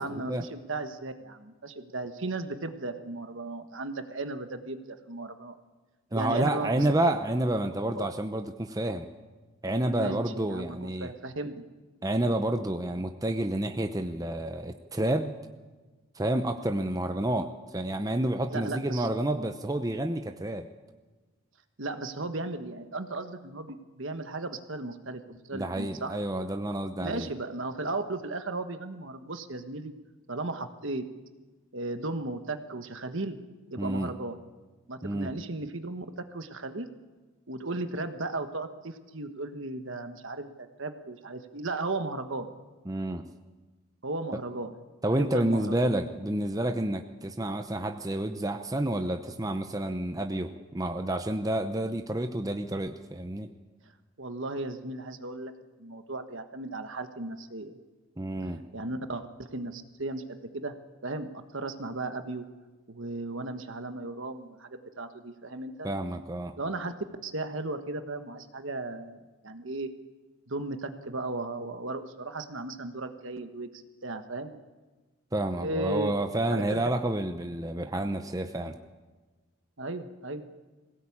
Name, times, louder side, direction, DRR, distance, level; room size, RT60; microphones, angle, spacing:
voice 1, 0.0-5.5 6.1-7.1 8.0-8.1 9.9-11.5 18.5-19.1 21.8-26.2 27.0-29.9 30.3-31.0 31.7-33.4 33.7-34.4 34.9-36.9 37.5-42.5 44.0-44.7 45.1-45.9 54.2-55.5 55.8-57.8 58.7-60.7 61.0-62.4 62.9-65.9 66.6-66.9 67.2-69.2 69.4-69.9 70.5-73.7 74.0-74.5 75.6-76.1 76.5-76.8 79.8-80.4, right 2 dB, 60° right, 8 dB, 1.4 m, -36 dB
voice 2, 6.1-9.1 9.6-11.1 12.0-15.4 16.1-20.7 25.5-27.3 33.8-34.1 35.0-35.3 42.9-43.2 45.0-53.5 58.2-58.6 65.8-66.5 75.3-78.8, right 1 dB, 15° right, 6 dB, 0.7 m, -29 dB
21.0 x 17.0 x 8.7 m, 1.3 s
head